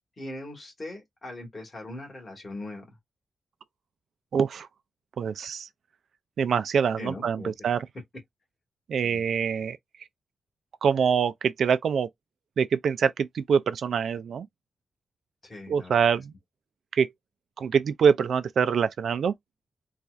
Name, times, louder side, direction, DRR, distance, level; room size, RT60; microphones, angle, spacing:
voice 1, 0.2-2.8 7.0-7.5 9.0-9.2 15.4-15.9, left 2 dB, 25° left, 1.7 m, -40 dB
voice 2, 4.3-4.7 5.2-5.7 6.4-7.9 8.9-9.8 10.8-12.1 12.6-14.5 15.7-16.3 16.9-17.1 17.6-19.3, right 6 dB, 70° right, 0.3 m, -24 dB
4.1 x 2.3 x 2.4 m
wide cardioid pair, 145°, 0 cm